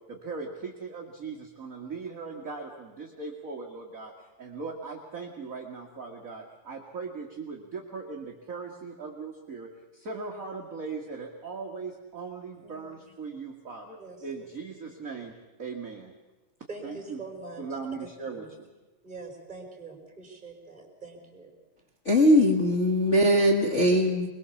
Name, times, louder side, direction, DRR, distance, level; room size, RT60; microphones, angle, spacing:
voice 1, 0.1-16.1 16.8-17.2 17.6-18.7, right 4 dB, 35° right, 0 dB, 1.6 m, -39 dB
voice 2, 12.6-13.1 14.0-14.5 16.7-17.7 18.0-18.5 19.0-21.5, right 3 dB, 15° right, 0 dB, 4.9 m, -44 dB
voice 3, 22.0-24.3, equal, 50° left, 2 dB, 0.8 m, -21 dB
23.0 x 22.0 x 7.1 m, 1.2 s
omnidirectional pair, 3.8 m